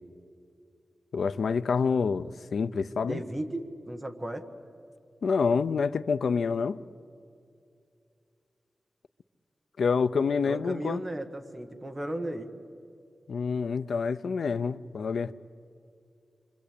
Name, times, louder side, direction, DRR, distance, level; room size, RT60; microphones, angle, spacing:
voice 1, 1.1-3.2 5.2-6.8 9.8-11.0 13.3-15.3, left 5 dB, 85° left, 0.6 m, -27 dB
voice 2, 3.0-4.5 10.4-12.5, right 1 dB, 20° right, 1.5 m, -35 dB
27.5 x 24.5 x 8.5 m
wide cardioid pair, 170°, 0 cm